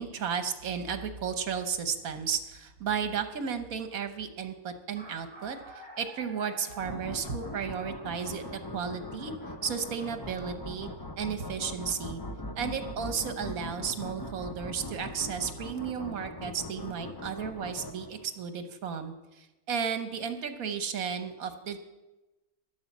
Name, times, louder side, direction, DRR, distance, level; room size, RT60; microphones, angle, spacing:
voice 1, 0.0-9.3 9.6-10.9 11.2-12.2 12.6-21.8, right 7 dB, 70° right, 8 dB, 1.4 m, -34 dB
sound 1, 2.8-3.1 4.0-4.1 4.3-4.4 4.7-11.1, equal, 5° left, 5.7 m, -51 dB
sound 2, 6.8-18.4, left 1 dB, 25° left, 0.4 m, -41 dB
11.5 x 9.9 x 7.2 m, 1.1 s
omnidirectional pair, 1.6 m